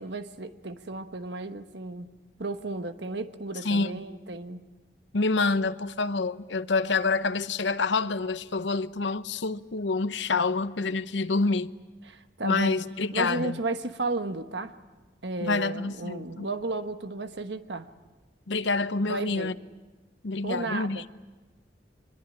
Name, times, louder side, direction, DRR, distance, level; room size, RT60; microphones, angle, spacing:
voice 1, 0.0-2.1 2.4-4.6 12.1-12.7 13.1-14.8 15.2-17.9 19.0-19.5 20.4-21.0, right 2 dB, 75° right, 1.3 m, -33 dB
voice 2, 5.1-11.7 12.4-13.6 15.4-16.5 18.5-19.5 20.2-21.1, left 3 dB, 85° left, 0.8 m, -27 dB
25.0 x 22.0 x 10.0 m
head